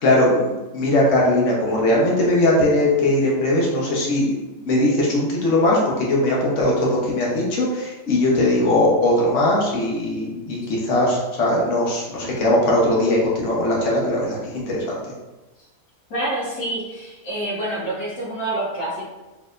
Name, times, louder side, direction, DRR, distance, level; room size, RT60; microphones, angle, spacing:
voice 1, 0.0-15.0, left 1 dB, 60° left, -4 dB, 1.3 m, -20 dB
voice 2, 16.1-19.1, right 1 dB, 80° left, -7 dB, 1.6 m, -27 dB
4.4 x 3.3 x 2.4 m, 1.1 s
omnidirectional pair, 1.5 m